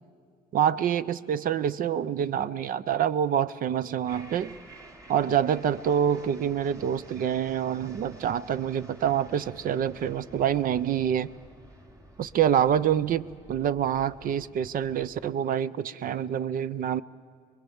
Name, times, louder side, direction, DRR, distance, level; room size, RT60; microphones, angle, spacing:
voice 1, 0.5-4.5 5.1-11.3 12.2-17.0, right 9 dB, 55° right, 17 dB, 0.7 m, -26 dB
sound 1, 4.1-15.2, right 1 dB, 20° right, 3.0 m, -51 dB
24.5 x 21.5 x 7.2 m, 2.1 s
cardioid pair, 110°, 17 cm